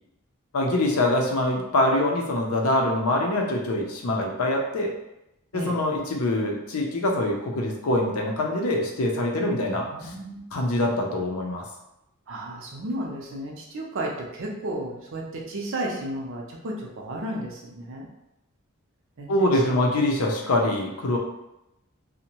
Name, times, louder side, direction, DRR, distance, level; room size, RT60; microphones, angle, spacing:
voice 1, 0.5-4.9 5.5-9.9 10.5-11.7 19.3-21.2, left 1 dB, 85° left, 1 dB, 0.5 m, -24 dB
voice 2, 9.7-10.4 12.3-18.1 19.2-19.9, right 1 dB, 65° right, -1 dB, 0.6 m, -33 dB
2.6 x 2.1 x 2.9 m, 0.89 s
head